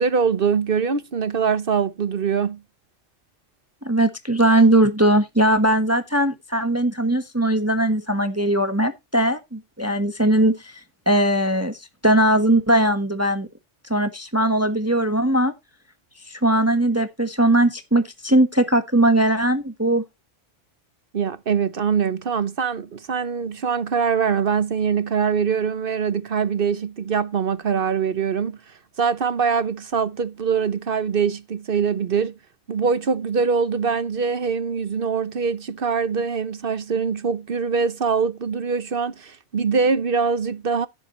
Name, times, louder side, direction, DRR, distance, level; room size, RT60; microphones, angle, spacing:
voice 1, 0.0-2.6 21.1-28.6 29.0-32.4 32.7-40.9, right 6 dB, 50° right, 1.1 m, -23 dB
voice 2, 3.8-10.8 11.1-13.5 13.9-15.5 16.3-20.0, right 1 dB, 15° right, 1.3 m, -19 dB
15.5 x 7.7 x 3.1 m
omnidirectional pair, 1.2 m